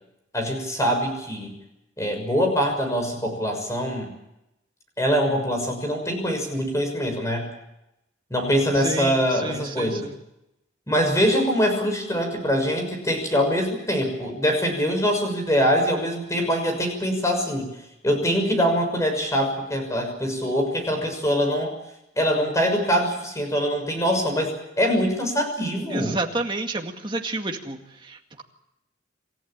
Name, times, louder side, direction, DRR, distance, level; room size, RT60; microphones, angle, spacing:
voice 1, 0.3-1.5 2.0-4.1 5.0-7.5 8.3-10.1 10.9-17.7 18.0-21.7 22.2-26.1, equal, 15° left, 4 dB, 6.3 m, -23 dB
voice 2, 8.8-10.1 25.9-27.8 28.0-28.4, right 2 dB, 25° right, 3 dB, 2.2 m, -30 dB
27.5 x 15.0 x 8.9 m, 0.86 s
head